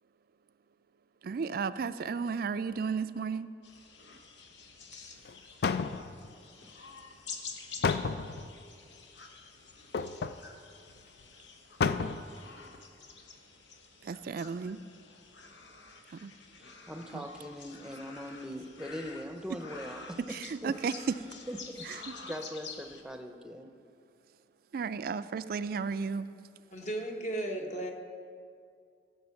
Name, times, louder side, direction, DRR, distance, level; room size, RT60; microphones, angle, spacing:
voice 1, 1.2-3.5 14.0-14.8 16.1-16.3 17.1-17.3 20.3-21.2 21.8-22.2 24.7-26.3, right 5 dB, 55° right, 0.3 m, -34 dB
sound 1, 3.6-23.0, left 4 dB, 85° left, 1.1 m, -49 dB
sound 2, 5.2-5.3 5.6-6.3 7.8-8.5 9.9-10.4 10.9-11.0 11.2-11.3 11.8-12.3 12.7-12.8, left 5 dB, 60° left, 0.4 m, -31 dB
voice 2, 16.5-20.2 20.6-20.7 21.5-23.7, equal, 5° right, 0.7 m, -41 dB
voice 3, 26.7-27.9, right 1 dB, 40° left, 1.1 m, -35 dB
15.0 x 6.9 x 5.8 m
head